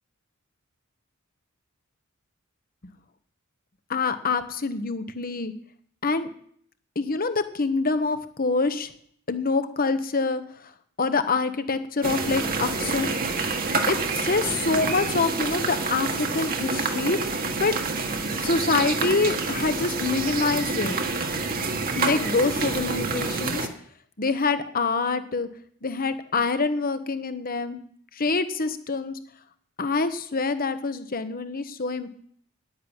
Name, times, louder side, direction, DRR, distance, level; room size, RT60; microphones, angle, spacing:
voice 1, 3.9-5.5 6.0-6.3 6.9-8.9 9.3-10.7 11.0-13.1 13.9-17.2 17.6-17.7 18.4-21.0 21.9-23.7 24.2-25.5 25.8-27.8 28.1-29.2 29.8-32.1, left 4 dB, 45° left, 11 dB, 1.1 m, -26 dB
sound 1, 12.0-23.7, right 4 dB, 45° right, 1.6 m, -27 dB
10.5 x 10.0 x 8.9 m, 0.64 s
head